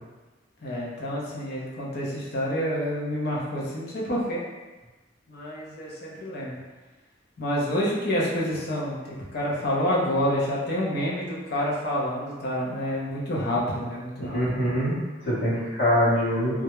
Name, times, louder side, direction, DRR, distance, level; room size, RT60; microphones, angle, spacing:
voice 1, 0.6-4.4 5.3-6.6 7.4-14.4, equal, 55° left, -5 dB, 0.6 m, -28 dB
voice 2, 14.3-16.6, equal, 80° left, -10 dB, 0.9 m, -24 dB
2.2 x 2.0 x 2.9 m, 1.2 s
head